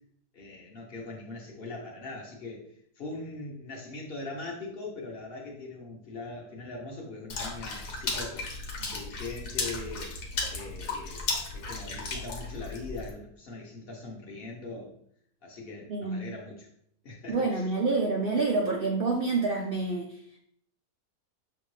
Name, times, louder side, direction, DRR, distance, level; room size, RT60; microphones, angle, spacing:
voice 1, 0.3-2.6 3.0-8.5 8.8-10.2 10.5-14.9 15.4-16.7 17.0-17.6, left 3 dB, 45° left, -1 dB, 1.0 m, -41 dB
Water / Splash splatter, 7.3-13.1, left 3 dB, 90° left, 1.5 m, -35 dB
voice 2, 15.9-16.2 17.3-20.4, right 3 dB, 80° right, 0 dB, 0.5 m, -28 dB
6.7 x 2.5 x 3.1 m, 0.67 s
omnidirectional pair, 1.6 m